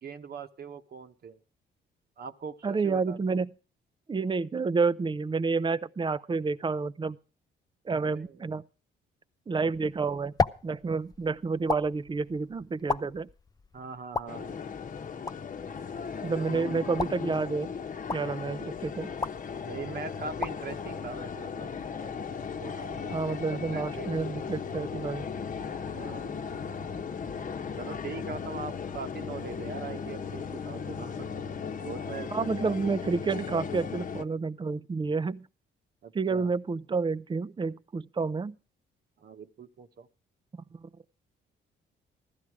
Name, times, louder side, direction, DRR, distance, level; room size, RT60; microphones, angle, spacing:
voice 1, 0.0-1.4 2.2-3.2 8.0-8.4 13.7-14.6 16.1-16.7 19.6-22.1 22.6-24.2 25.9-26.4 27.8-31.4 31.8-32.8 33.0-33.6 36.0-36.5 39.2-40.1, right 5 dB, 55° right, 1.2 m, -42 dB
voice 2, 2.6-3.5 4.1-7.2 7.8-8.6 9.5-10.3 10.6-13.3 16.2-17.7 18.1-19.1 23.1-25.3 32.3-35.5 36.1-38.5 40.5-40.9, right 4 dB, 25° right, 0.6 m, -29 dB
sound 1, 9.7-21.9, left 4 dB, 20° left, 0.6 m, -37 dB
sound 2, 14.3-34.2, left 6 dB, 40° left, 1.0 m, -37 dB
15.5 x 13.0 x 4.8 m
cardioid pair, 90°, 20 cm